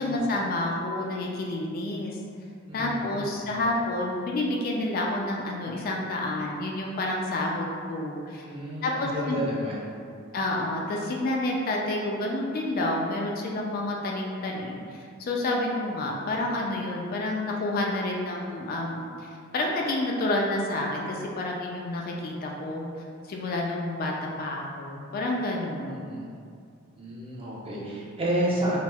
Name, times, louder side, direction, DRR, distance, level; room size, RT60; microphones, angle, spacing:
voice 1, 0.0-2.2 2.7-8.4 8.8-9.4 10.3-24.1 24.4-26.0, left 2 dB, 45° left, -1 dB, 0.3 m, -29 dB
voice 2, 2.7-3.5 8.4-9.9 25.9-26.3 27.0-28.8, right 1 dB, 25° right, -6 dB, 0.6 m, -31 dB
4.1 x 2.0 x 2.3 m, 2.3 s
head